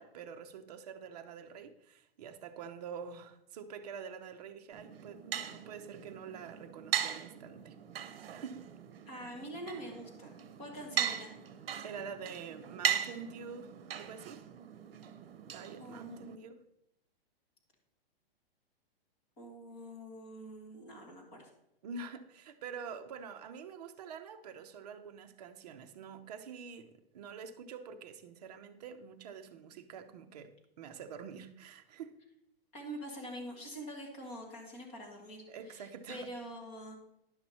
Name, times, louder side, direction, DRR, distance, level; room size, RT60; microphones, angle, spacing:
voice 1, 0.0-7.8 8.3-8.7 11.8-14.4 15.5-16.6 21.8-32.1 35.5-36.3, right 6 dB, 40° right, 7 dB, 0.7 m, -46 dB
sound 1, 4.7-16.4, right 10 dB, 70° right, 0.9 m, -39 dB
voice 2, 9.1-11.3 15.8-16.4 19.4-21.5 32.7-37.0, equal, 20° left, -1 dB, 1.8 m, -45 dB
11.0 x 5.9 x 4.2 m, 0.80 s
hypercardioid pair, 170°, 31 cm